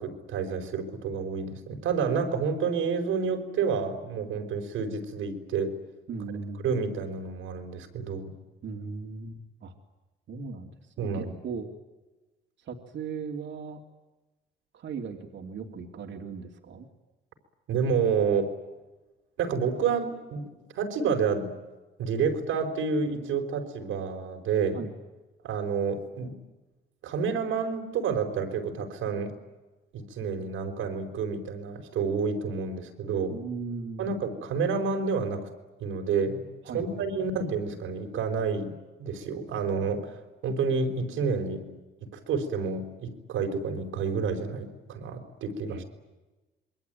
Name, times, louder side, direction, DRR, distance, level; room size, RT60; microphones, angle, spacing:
voice 1, 0.0-5.7 6.6-8.3 11.0-11.3 17.7-18.5 19.4-20.5 20.7-21.5 22.0-24.8 25.4-26.4 27.0-29.3 29.9-33.4 34.0-35.5 35.8-36.4 36.7-38.7 39.0-41.6 42.3-45.8, right 5 dB, 85° right, 4 dB, 4.8 m, -29 dB
voice 2, 6.1-6.7 8.6-9.7 10.3-10.7 11.0-11.7 12.6-13.8 14.7-16.9 24.7-25.0 33.3-34.1 36.6-37.0 45.7-45.8, right 5 dB, 65° right, 3 dB, 2.9 m, -38 dB
27.5 x 22.0 x 9.3 m, 1.1 s
cardioid pair, 90°, 20 cm